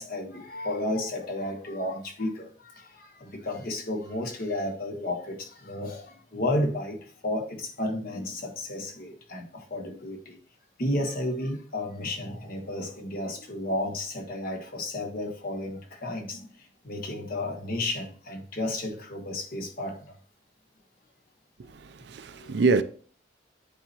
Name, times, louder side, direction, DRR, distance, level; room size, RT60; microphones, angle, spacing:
voice 1, 0.0-10.4 10.8-20.1 22.4-22.6, left 1 dB, 55° left, 1.3 m, -32 dB
voice 2, 21.6-22.8, right 4 dB, 65° right, 0.5 m, -26 dB
9.0 x 4.2 x 3.0 m
head